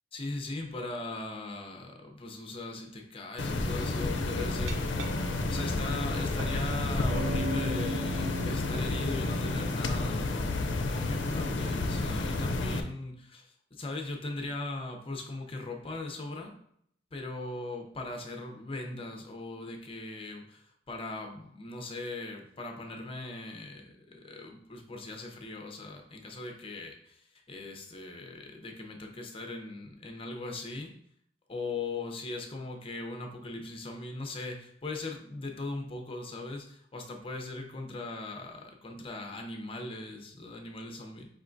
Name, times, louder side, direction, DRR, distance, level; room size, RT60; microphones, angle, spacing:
voice 1, 0.1-5.1 5.5-10.3 10.9-16.5 17.1-30.9 31.5-41.3, left 2 dB, 30° left, 3 dB, 0.6 m, -39 dB
sound 1, 3.4-12.8, left 2 dB, 75° left, 0.5 m, -30 dB
Glass, 4.4-10.5, right 1 dB, 85° right, 0.4 m, -40 dB
5.0 x 3.5 x 2.5 m, 0.68 s
head